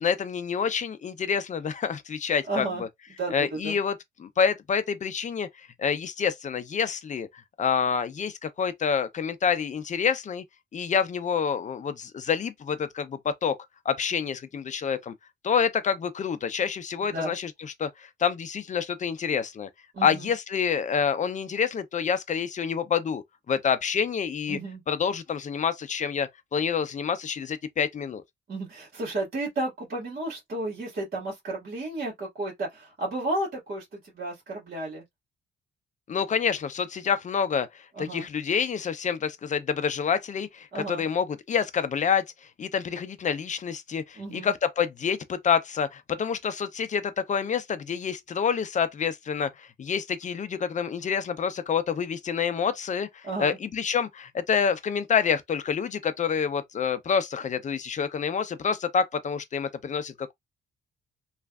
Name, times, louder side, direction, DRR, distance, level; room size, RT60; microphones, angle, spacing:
voice 1, 0.0-2.9 3.3-5.5 5.8-7.3 7.6-10.4 10.7-13.6 13.8-15.1 15.4-19.7 20.0-24.6 24.9-28.2 36.1-42.2 42.6-60.3, left 7 dB, 40° left, 0.6 m, -27 dB
voice 2, 2.5-2.8 3.2-3.8 17.1-17.3 19.9-20.3 24.5-24.8 28.5-35.0 38.0-38.3 40.7-41.0 44.2-44.5 53.2-53.6, right 2 dB, 50° right, 1.9 m, -32 dB
3.2 x 2.5 x 2.3 m
cardioid pair, 90°, 20 cm